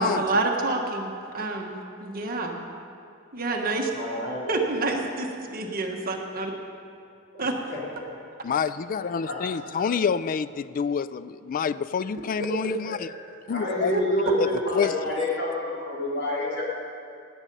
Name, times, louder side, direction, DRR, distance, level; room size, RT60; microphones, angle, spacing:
voice 1, 0.0-2.6 3.3-3.9 4.5-6.5 7.4-7.5 12.6-12.7 13.9-14.0, right 2 dB, 45° right, 1 dB, 1.4 m, -28 dB
voice 2, 3.9-4.6 7.3-8.1 8.9-9.4 9.8-10.0 12.8-16.6, left 1 dB, 60° left, -5 dB, 3.7 m, -29 dB
voice 3, 8.4-13.1 13.5-14.0 14.4-14.9, left 6 dB, 40° left, 15 dB, 0.3 m, -27 dB
18.0 x 8.6 x 5.5 m, 2.5 s
head